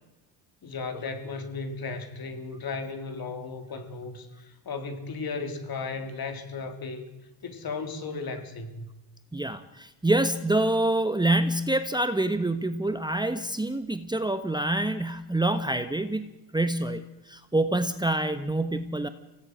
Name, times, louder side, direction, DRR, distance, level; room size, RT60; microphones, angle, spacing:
voice 1, 0.6-7.1 7.4-8.9, left 4 dB, 50° left, 7 dB, 3.7 m, -35 dB
voice 2, 9.3-17.0 17.3-19.1, right 1 dB, 10° right, 10 dB, 1.3 m, -26 dB
25.0 x 17.5 x 6.3 m, 1.0 s
supercardioid pair, 80°, 47 cm